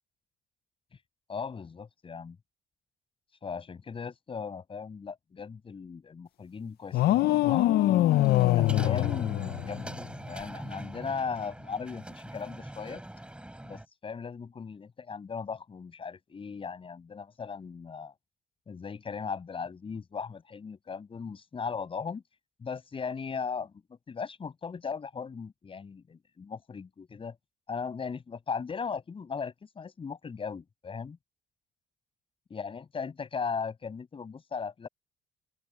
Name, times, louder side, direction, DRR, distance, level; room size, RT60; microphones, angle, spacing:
voice 1, 1.3-2.4 3.4-8.0 8.6-10.0 10.3-13.0 13.6-18.1 18.7-22.2 22.6-23.7 24.1-27.4 27.7-31.2 32.5-34.9, left 5 dB, 30° left, 7.3 m, -37 dB
sound 1, 6.9-10.1, left 15 dB, 70° left, 0.7 m, -24 dB
sound 2, 8.1-13.9, right 1 dB, 5° right, 7.2 m, -42 dB
open air
cardioid pair, 110°, 17 cm